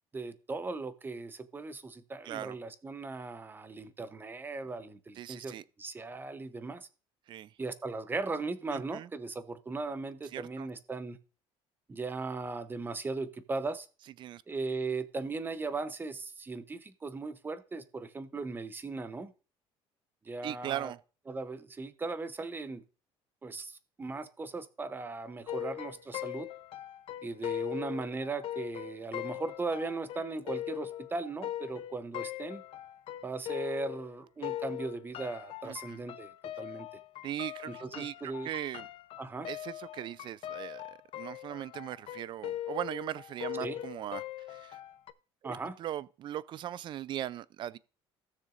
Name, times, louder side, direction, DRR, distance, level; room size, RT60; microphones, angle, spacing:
voice 1, 0.1-6.9 7.6-11.2 11.9-13.9 14.5-19.3 20.2-20.9 21.3-22.8 23.4-26.5 27.2-32.6 33.2-36.3 36.6-36.9 37.7-38.5 39.2-39.5 43.6-43.8 45.4-45.8, right 3 dB, 20° right, 0.8 m, -38 dB
voice 2, 2.3-2.6 5.2-5.6 7.3-7.5 8.7-9.1 10.3-10.7 14.2-14.4 20.4-21.0 35.6-36.0 37.2-38.9 39.5-44.8 45.4-47.8, right 12 dB, 45° right, 0.4 m, -39 dB
sound 1, 25.5-34.1 34.4-45.1, left 13 dB, 55° left, 0.6 m, -40 dB
16.5 x 6.7 x 2.5 m
cardioid pair, 125°, 11 cm